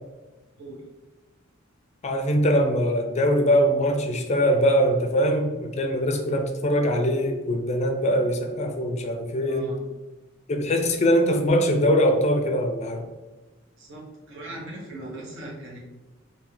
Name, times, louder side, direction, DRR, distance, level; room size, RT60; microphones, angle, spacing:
voice 1, 2.0-9.7 10.5-13.1, equal, 35° left, 5 dB, 0.4 m, -22 dB
voice 2, 9.4-9.8 13.8-15.8, right 1 dB, 65° right, -3 dB, 1.0 m, -39 dB
3.5 x 2.7 x 3.2 m, 1.1 s
head